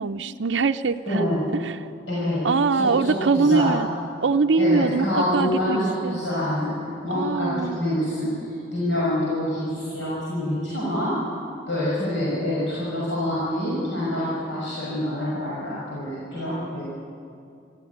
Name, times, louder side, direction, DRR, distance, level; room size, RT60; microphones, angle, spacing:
voice 1, 0.0-1.3 1.6-1.8 2.4-3.9 4.2-6.2 7.1-7.8, right 4 dB, 75° right, 6 dB, 0.6 m, -23 dB
voice 2, 1.0-1.4 2.1-2.5 2.8-3.7 4.6-6.7 7.0-11.2 11.7-16.8, left 1 dB, 80° left, -7 dB, 5.9 m, -26 dB
25.5 x 14.0 x 9.4 m, 2.4 s
head